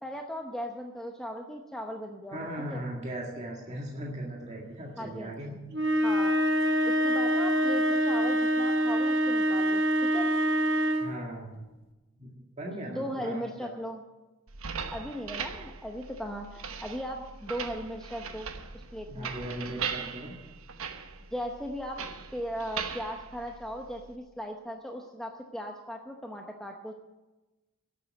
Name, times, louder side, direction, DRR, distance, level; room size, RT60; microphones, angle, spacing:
voice 1, 0.0-2.8 5.0-5.3 6.0-6.3 6.8-10.3 12.9-14.0 14.9-18.5 18.7-19.3 21.3-22.0 22.3-26.9, equal, ahead, 2 dB, 0.8 m, -38 dB
voice 2, 2.3-5.5 11.0-11.6 12.2-12.3 12.6-13.7 19.1-20.3, right 1 dB, 30° right, -2 dB, 1.9 m, -38 dB
sound 1, 5.7-11.2, equal, 50° right, 1.5 m, -25 dB
sound 2, 14.5-24.1, right 6 dB, 70° right, 1.1 m, -40 dB
12.0 x 8.2 x 9.4 m, 1.1 s
head